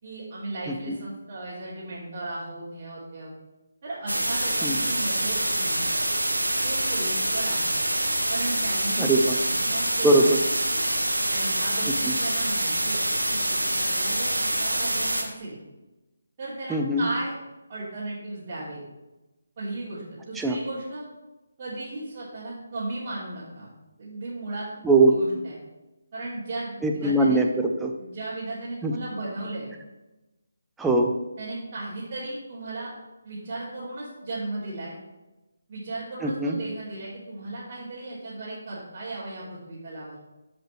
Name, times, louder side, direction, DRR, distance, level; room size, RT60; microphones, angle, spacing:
voice 1, 0.0-3.3 3.8-5.9 6.6-7.8 8.3-9.1 9.4-10.6 11.3-15.1 15.4-15.6 16.4-17.3 17.7-18.8 19.6-21.0 21.6-24.7 25.1-25.6 26.1-27.4 28.0-29.7 31.4-32.9 33.2-35.0 35.7-40.2, right 2 dB, 35° right, -11 dB, 2.7 m, -36 dB
sound 1, 4.1-15.2, right 1 dB, 85° right, 1.4 m, -26 dB
voice 2, 9.0-9.4 10.0-10.4 12.1-12.2 16.7-17.0 20.4-20.6 24.8-25.2 26.8-27.9 28.8-28.9 30.8-31.1 36.2-36.6, right 2 dB, 5° right, 2 dB, 0.6 m, -21 dB
12.0 x 5.1 x 3.2 m, 1.0 s
figure-of-eight pair, 150°, 0 cm